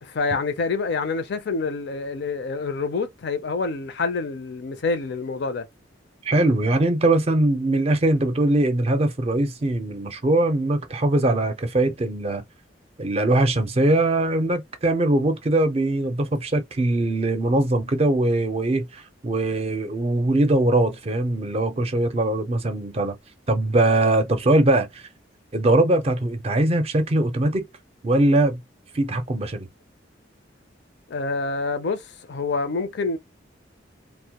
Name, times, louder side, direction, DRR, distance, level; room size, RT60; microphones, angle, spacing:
voice 1, 0.0-5.6 31.1-33.2, left 4 dB, 65° left, 0.5 m, -27 dB
voice 2, 6.2-12.4 13.0-23.2 23.5-25.1 25.5-27.7 28.0-28.6 28.9-29.7, right 2 dB, 35° right, 0.5 m, -21 dB
2.1 x 2.1 x 2.8 m
head